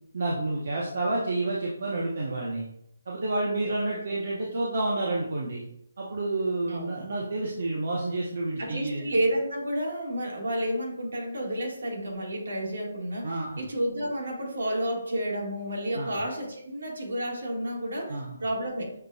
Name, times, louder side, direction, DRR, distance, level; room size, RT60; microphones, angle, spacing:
voice 1, 0.1-2.7 3.1-5.6 6.0-9.1 13.2-13.6 15.9-16.1 18.1-18.4, right 2 dB, 50° right, -4 dB, 0.8 m, -29 dB
voice 2, 6.7-7.0 8.6-18.9, right 1 dB, 75° right, -1 dB, 1.6 m, -31 dB
6.5 x 2.2 x 2.6 m, 0.73 s
hypercardioid pair, 170°, 0 cm